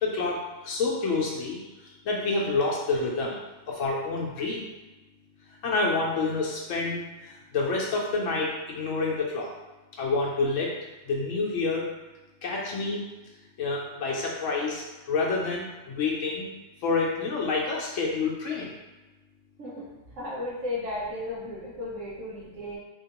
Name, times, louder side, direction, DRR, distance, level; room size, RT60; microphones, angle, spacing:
voice 1, 0.0-1.6 2.1-3.4 3.7-4.6 5.6-7.0 7.5-9.5 10.0-10.7 11.1-11.9 12.4-13.0 13.6-14.8 15.1-16.5 16.8-18.7, left 3 dB, 75° left, -3 dB, 1.0 m, -28 dB
voice 2, 20.2-22.8, left 1 dB, 75° right, -7 dB, 1.1 m, -34 dB
3.8 x 2.8 x 2.8 m, 1.1 s
omnidirectional pair, 1.3 m